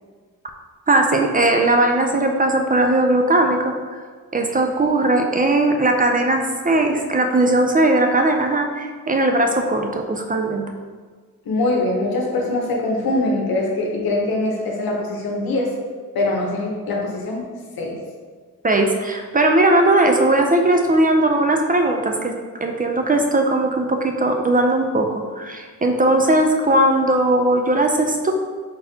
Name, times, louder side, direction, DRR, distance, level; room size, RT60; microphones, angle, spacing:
voice 1, 0.9-3.7 4.3-10.6 18.6-22.3 22.6-28.3, right 2 dB, 25° right, 3 dB, 0.3 m, -18 dB
voice 2, 11.5-15.7 16.1-17.4 17.8-18.0, left 2 dB, 90° left, 0 dB, 0.9 m, -22 dB
4.1 x 4.0 x 2.7 m, 1.5 s
wide cardioid pair, 105°, 35 cm